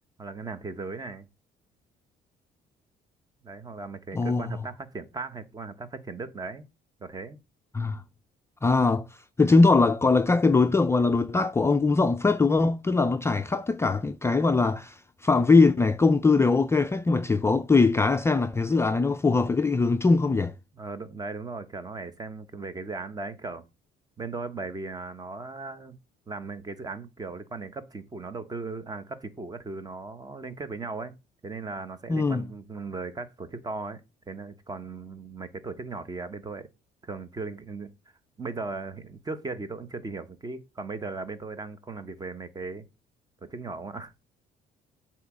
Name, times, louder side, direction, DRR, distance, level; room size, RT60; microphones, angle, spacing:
voice 1, 0.2-1.3 3.4-6.6 7.0-7.4 20.7-23.6 24.2-26.0 26.3-31.1 31.4-34.0 34.3-36.7 37.0-37.9 38.4-42.9 43.4-44.1, right 3 dB, 20° right, 1.0 m, -37 dB
voice 2, 8.6-9.0 9.4-20.5 32.1-32.4, left 3 dB, 15° left, 0.4 m, -21 dB
8.0 x 3.0 x 6.1 m
cardioid pair, 110°, 17 cm